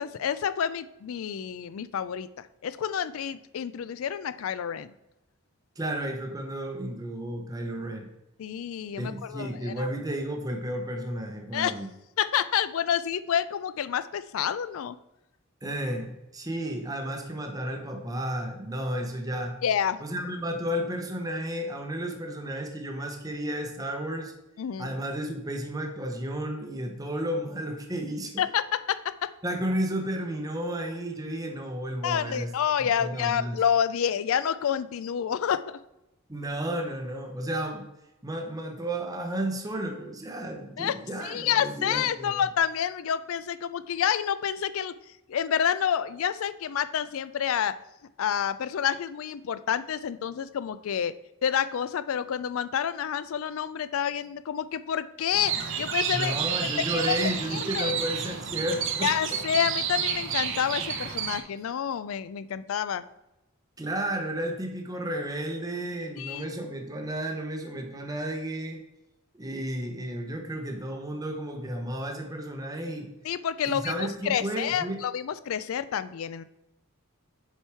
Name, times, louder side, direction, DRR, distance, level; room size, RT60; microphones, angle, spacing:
voice 1, 0.0-4.9 8.4-9.9 11.5-11.7 12.2-15.0 19.6-20.0 24.6-24.9 28.4-29.0 32.0-35.8 40.8-40.9 41.2-44.9 45.3-47.7 48.2-51.1 51.4-56.3 56.9-57.9 59.0-63.0 66.2-66.5 73.2-76.4, left 8 dB, 70° left, 14 dB, 0.3 m, -28 dB
voice 2, 5.8-8.1 9.0-11.9 15.6-19.6 20.0-24.3 24.8-28.4 29.4-32.5 32.8-33.6 36.3-37.9 38.2-42.4 56.1-59.4 63.8-68.8 69.3-73.1 73.7-75.0, right 1 dB, 15° right, 4 dB, 0.7 m, -32 dB
sound 1, 55.3-61.4, right 7 dB, 60° right, 0.7 m, -30 dB
6.7 x 4.5 x 4.5 m, 0.92 s
head